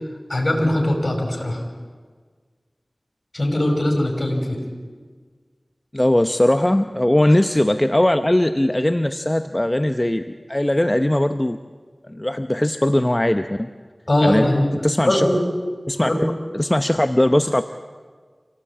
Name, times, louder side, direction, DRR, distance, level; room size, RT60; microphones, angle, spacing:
voice 1, 0.3-1.6 3.3-4.6 14.1-14.7 15.1-15.4 16.0-16.2, left 1 dB, 50° left, 1 dB, 5.7 m, -20 dB
voice 2, 5.9-11.6 12.1-13.7 14.2-14.5 14.8-15.3 15.9-16.1 16.5-17.6, left 1 dB, 25° left, 8 dB, 0.8 m, -19 dB
26.5 x 17.5 x 8.7 m, 1.6 s
wide cardioid pair, 50°, 0 cm